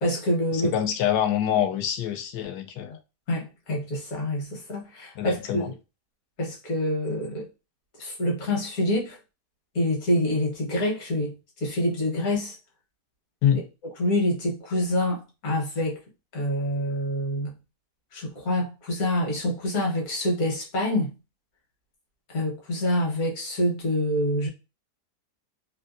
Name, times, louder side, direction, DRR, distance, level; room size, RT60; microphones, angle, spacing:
voice 1, 0.0-0.7 3.3-5.7 6.4-7.5 8.0-9.2 9.7-12.5 14.0-16.0 16.3-17.6 18.1-21.1 22.3-24.5, left 1 dB, 60° left, 1.5 m, -26 dB
voice 2, 0.5-3.0 5.2-5.7 13.4-13.6, left 10 dB, 80° left, 1.1 m, -25 dB
3.3 x 2.6 x 2.5 m
omnidirectional pair, 1.7 m